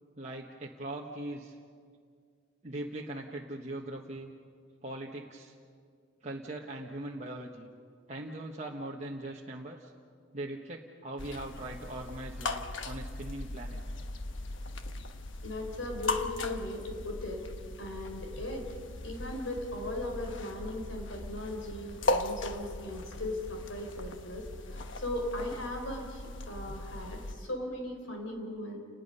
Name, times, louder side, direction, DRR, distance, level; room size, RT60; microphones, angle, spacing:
voice 1, 0.2-1.5 2.6-4.3 4.8-5.5 6.2-7.7 8.1-9.9 10.3-13.8, right 1 dB, 35° right, -2 dB, 1.3 m, -40 dB
sound 1, 11.2-27.3, left 2 dB, 70° left, 1.2 m, -38 dB
voice 2, 15.4-17.5 17.8-18.7 19.0-28.8, left 1 dB, 90° left, 2 dB, 4.4 m, -38 dB
30.0 x 20.0 x 5.5 m, 2.2 s
head